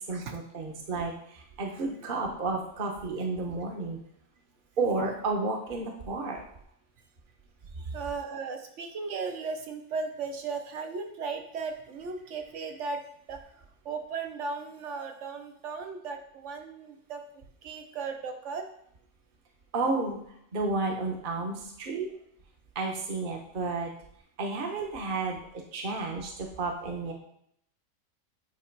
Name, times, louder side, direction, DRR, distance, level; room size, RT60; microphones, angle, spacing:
voice 1, 0.1-4.0 4.8-6.4 19.7-20.2 20.5-22.1 22.7-23.9 24.4-27.1, right 3 dB, 45° right, 1 dB, 1.1 m, -31 dB
voice 2, 7.8-13.0 13.3-13.4 13.8-17.2 17.6-18.7, right 4 dB, 65° right, 5 dB, 1.1 m, -36 dB
8.4 x 3.1 x 4.5 m, 0.70 s
omnidirectional pair, 1.4 m